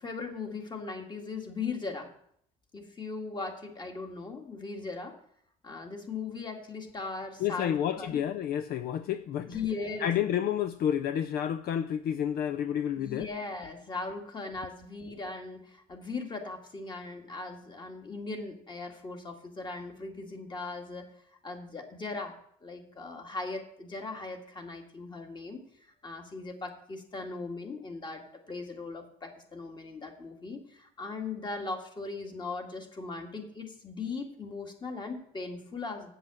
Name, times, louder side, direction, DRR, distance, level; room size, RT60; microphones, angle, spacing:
voice 1, 0.0-2.1 2.7-5.2 5.6-8.2 9.4-10.1 13.0-21.1 21.4-25.7 26.0-36.1, left 4 dB, 25° left, 2.0 m, -39 dB
voice 2, 7.4-9.5 10.0-13.3, left 9 dB, 65° left, 0.5 m, -30 dB
7.8 x 7.4 x 7.7 m
cardioid pair, 110°, 17 cm